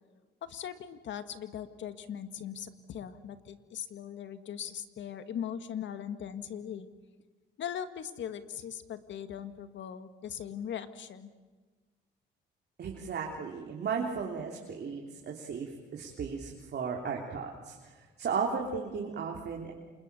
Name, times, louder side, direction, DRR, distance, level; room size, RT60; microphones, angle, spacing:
voice 1, 0.4-6.9 7.6-11.3, left 9 dB, 70° left, 10 dB, 1.9 m, -40 dB
voice 2, 12.8-17.8 18.2-19.7, right 5 dB, 55° right, 0 dB, 3.3 m, -35 dB
28.5 x 27.5 x 6.9 m, 1.4 s
cardioid pair, 90°, 20 cm